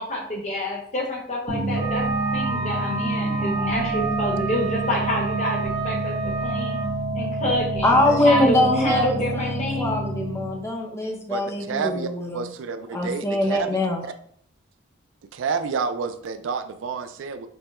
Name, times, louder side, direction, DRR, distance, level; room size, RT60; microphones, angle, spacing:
voice 1, 0.0-2.0 2.3-6.8 7.1-10.0, left 1 dB, 35° left, -1 dB, 1.0 m, -28 dB
sound 1, 1.5-10.7, right 2 dB, 40° right, 0.7 m, -27 dB
Wind instrument woodwind instrument, 1.7-6.9, right 5 dB, 15° right, 0.9 m, -32 dB
voice 2, 7.8-12.4 12.9-14.0, left 1 dB, 15° left, 1 dB, 0.6 m, -23 dB
voice 3, 11.3-14.1 15.3-17.5, right 5 dB, 75° right, 10 dB, 0.4 m, -30 dB
5.4 x 2.1 x 2.9 m, 0.62 s
head